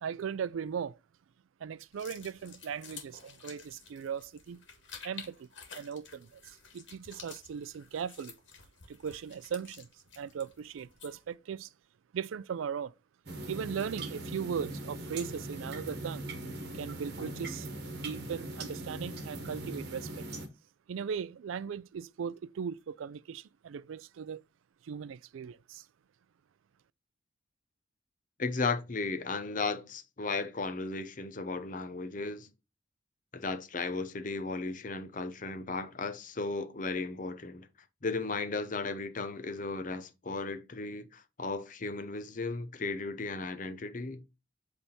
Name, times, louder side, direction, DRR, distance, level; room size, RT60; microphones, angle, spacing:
voice 1, 0.0-1.0 1.6-4.6 5.0-5.5 5.7-8.4 8.9-9.9 10.2-11.7 12.1-12.9 13.5-16.3 16.7-17.7 17.9-20.3 20.9-24.4 24.8-25.8, right 7 dB, 90° right, 0.4 m, -38 dB
sound 1, 1.9-11.3, left 6 dB, 70° left, 1.8 m, -51 dB
sound 2, 13.3-20.5, right 2 dB, 55° right, 1.3 m, -40 dB
voice 2, 28.4-32.5 33.3-37.7 38.0-44.2, left 3 dB, 40° left, 0.7 m, -35 dB
8.1 x 3.5 x 4.2 m
head